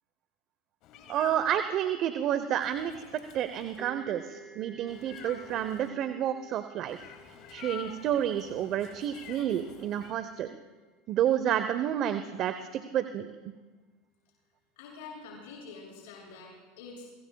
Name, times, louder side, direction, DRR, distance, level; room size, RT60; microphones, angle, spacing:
Meow, 0.8-1.6 2.6-3.9 4.9-5.9 6.9-10.1, left 10 dB, 55° left, 2.3 m, -48 dB
voice 1, 1.1-2.9 3.3-7.0 7.5-10.5 11.1-13.3, right 10 dB, 50° right, 9 dB, 0.8 m, -30 dB
sound 1, 3.8-11.3, right 2 dB, 10° right, 3.1 m, -53 dB
voice 2, 14.8-17.1, left 4 dB, 70° left, -3 dB, 7.1 m, -46 dB
26.0 x 22.5 x 2.3 m, 1.3 s
hypercardioid pair, 90°, 0 cm